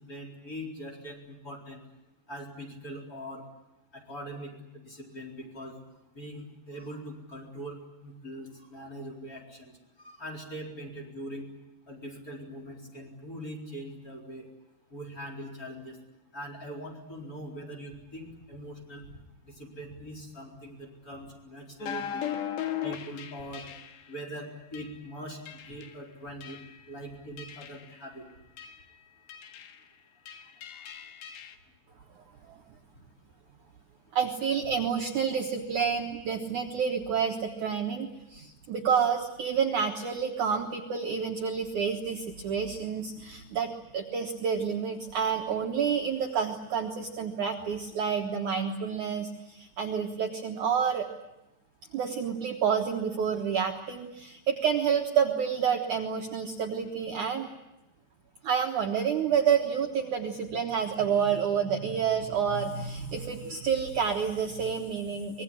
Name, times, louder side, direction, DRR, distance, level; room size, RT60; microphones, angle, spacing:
voice 1, 0.1-1.8 2.3-3.4 3.9-5.8 6.1-9.7 10.0-11.5 11.9-14.5 14.9-16.0 16.3-19.1 19.5-22.3 22.8-23.7 24.1-26.6 26.9-28.3 30.7-30.8, equal, 20° left, 0 dB, 4.2 m, -42 dB
sound 1, 21.8-24.1 24.7-24.9 25.5-26.0 26.4-26.9 27.4-27.9 28.6-28.9 29.3-29.8 30.3-31.6, left 10 dB, 90° left, 3.8 m, -38 dB
voice 2, 34.1-51.1 51.9-57.5 58.4-65.4, right 7 dB, 60° right, 3 dB, 2.2 m, -29 dB
25.0 x 20.5 x 10.0 m, 0.94 s
omnidirectional pair, 4.9 m